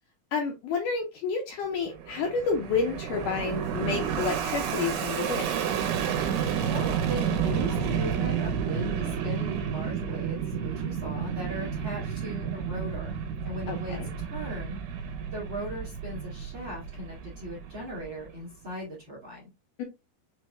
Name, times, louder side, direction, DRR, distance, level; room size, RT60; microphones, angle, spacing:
voice 1, 0.3-5.5 13.7-14.1 19.8-19.9, left 5 dB, 75° left, 1 dB, 2.1 m, -30 dB
Fixed-wing aircraft airplane, 1.8-18.4, right 8 dB, 85° right, 3.0 m, -31 dB
voice 2, 6.6-13.2 13.4-14.8 15.3-19.5, equal, 40° right, -3 dB, 1.8 m, -38 dB
6.8 x 3.3 x 2.2 m, 0.23 s
omnidirectional pair, 4.6 m